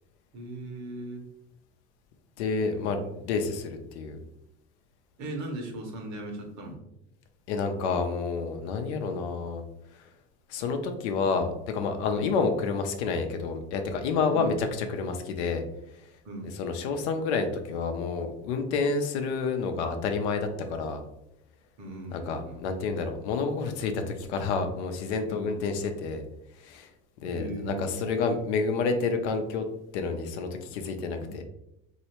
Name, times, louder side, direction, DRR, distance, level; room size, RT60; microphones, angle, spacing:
voice 1, 0.3-1.3 2.7-3.0 5.2-6.8 12.1-12.3 14.3-14.5 16.2-16.5 21.8-22.6 25.3-25.7 27.2-28.3 31.2-31.3, right 1 dB, 55° right, 2 dB, 1.1 m, -38 dB
voice 2, 2.4-4.2 7.5-9.6 9.9-10.1 10.5-15.6 15.9-16.0 16.6-21.0 22.1-26.2 26.6-26.9 27.2-29.6 29.9-31.4, left 4 dB, 85° left, 6 dB, 0.6 m, -29 dB
3.1 x 2.7 x 2.9 m, 0.84 s
supercardioid pair, 85°, 33 cm